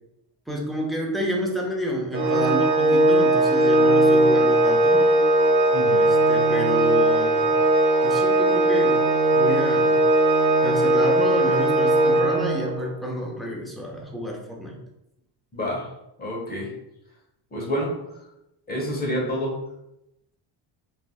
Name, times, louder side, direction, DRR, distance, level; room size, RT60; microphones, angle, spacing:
voice 1, 0.5-5.1 6.0-7.5 8.0-9.0 9.3-10.1 10.6-14.8, equal, ahead, -2 dB, 0.4 m, -29 dB
Organ, 2.1-12.9, right 1 dB, 70° right, 0.9 m, -19 dB
voice 2, 5.7-6.1 15.5-15.9 16.2-16.7 17.5-17.9 18.7-19.5, equal, 20° left, -3 dB, 0.9 m, -28 dB
3.3 x 2.5 x 2.3 m, 0.88 s
cardioid pair, 120°, 48 cm